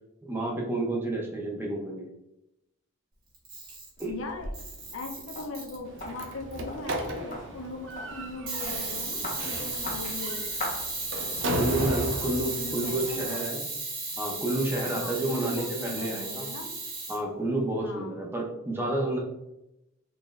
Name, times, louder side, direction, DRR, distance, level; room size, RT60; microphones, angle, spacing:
voice 1, 0.2-2.1 4.0-4.2 11.5-13.7 14.2-16.5 17.1-19.2, right 1 dB, 10° right, -1 dB, 0.5 m, -30 dB
Camera, 3.3-4.1 4.5-6.1 8.5-17.2, right 3 dB, 45° right, 1.5 m, -35 dB
voice 2, 4.0-4.5 4.9-10.5 12.6-13.5 15.0-16.7 17.8-18.2, left 2 dB, 75° left, 3 dB, 0.6 m, -39 dB
sound 1, 4.0-11.5, left 1 dB, 35° left, 0.5 m, -42 dB
Slam, 5.8-13.3, right 1 dB, 60° right, 0.5 m, -35 dB
3.9 x 3.0 x 2.4 m, 0.90 s
head